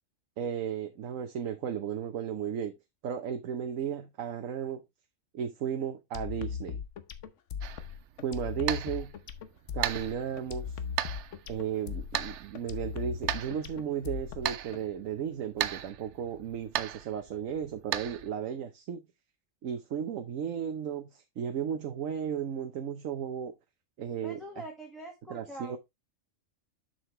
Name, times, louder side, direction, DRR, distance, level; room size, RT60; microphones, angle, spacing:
voice 1, 0.4-2.8 3.0-4.8 5.3-6.8 8.2-9.1 9.7-10.8 11.5-19.0 19.6-23.5 24.0-24.4 25.3-25.8, right 8 dB, 90° right, 1.2 m, -34 dB
sound 1, 6.1-14.8, left 7 dB, 70° left, 1.1 m, -38 dB
sound 2, 7.6-18.3, right 11 dB, 70° right, 0.8 m, -38 dB
voice 2, 24.2-25.8, right 1 dB, ahead, 1.4 m, -44 dB
7.4 x 6.5 x 3.1 m
omnidirectional pair, 1.3 m